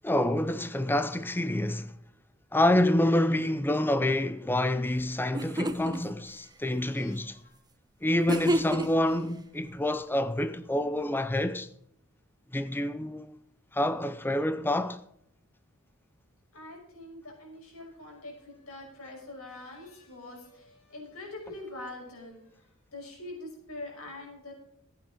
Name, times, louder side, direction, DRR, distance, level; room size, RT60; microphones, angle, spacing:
voice 1, 0.0-1.9 2.5-7.4 8.0-11.7 12.5-13.3 13.7-15.0, left 1 dB, 10° left, 0.6 m, -27 dB
sound 1, 5.0-5.1 5.3-6.0 8.3-9.1, equal, 20° right, 1.1 m, -28 dB
voice 2, 6.9-7.2 16.5-22.4 22.9-24.5, left 2 dB, 80° left, 5.7 m, -44 dB
15.0 x 8.9 x 5.1 m
head